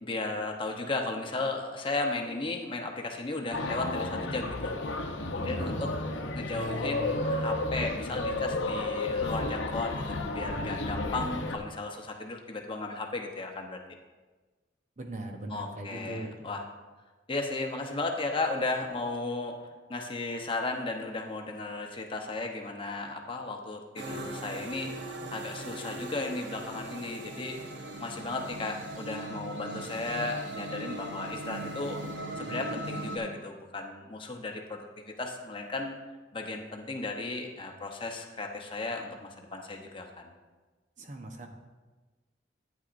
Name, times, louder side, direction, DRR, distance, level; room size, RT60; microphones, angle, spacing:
voice 1, 0.0-4.8 5.3-5.9 6.3-13.8 15.5-16.6 17.3-19.6 19.9-27.6 28.0-32.0 32.4-36.0 36.3-40.3, left 3 dB, 25° left, 2 dB, 0.8 m, -35 dB
sound 1, 3.5-11.6, left 2 dB, 80° left, 0.8 m, -32 dB
voice 2, 5.4-6.1 15.0-16.4 41.0-41.5, right 1 dB, 40° right, 3 dB, 0.9 m, -40 dB
sound 2, 24.0-33.2, right 1 dB, 65° right, 0.8 m, -39 dB
11.5 x 9.1 x 2.6 m, 1.3 s
head